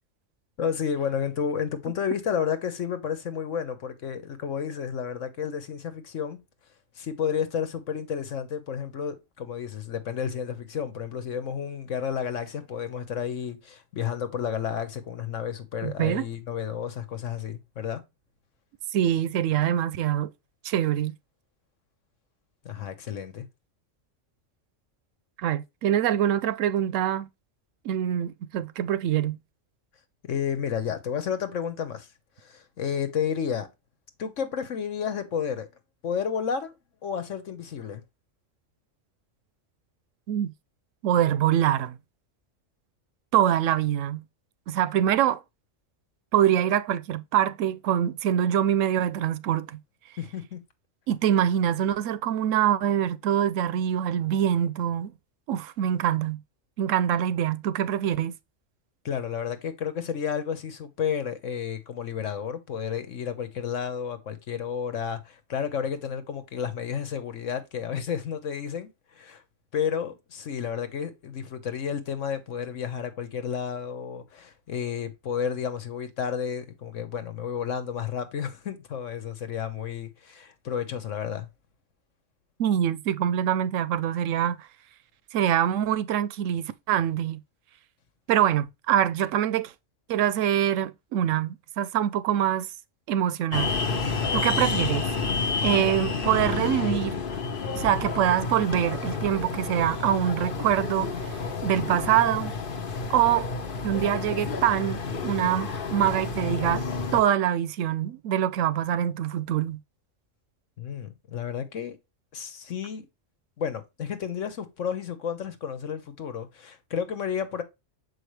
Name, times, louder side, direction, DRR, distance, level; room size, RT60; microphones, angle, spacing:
voice 1, 0.6-6.4 7.0-18.0 22.6-23.5 30.2-32.1 32.4-33.7 34.2-35.7 36.0-36.7 37.0-38.0 50.2-50.6 59.0-69.4 69.7-81.5 94.2-94.5 110.8-112.0 112.3-113.1 113.6-117.6, left 7 dB, 70° left, 1.4 m, -31 dB
voice 2, 15.8-16.3 18.9-20.3 20.6-21.1 25.4-27.3 27.8-29.4 40.3-40.5 41.0-42.0 43.3-44.2 44.7-45.4 46.3-49.8 51.1-55.1 55.5-56.4 56.8-58.3 82.6-84.7 85.3-87.4 88.3-89.7 90.1-92.7 93.1-93.8 94.3-95.0 95.6-97.2 97.7-101.4 101.6-102.5 103.1-103.5 103.8-106.8 107.1-109.8, right 10 dB, 75° right, 0.9 m, -24 dB
sound 1, 93.5-107.2, left 4 dB, 45° left, 1.0 m, -30 dB
6.7 x 4.8 x 3.2 m
omnidirectional pair, 1.3 m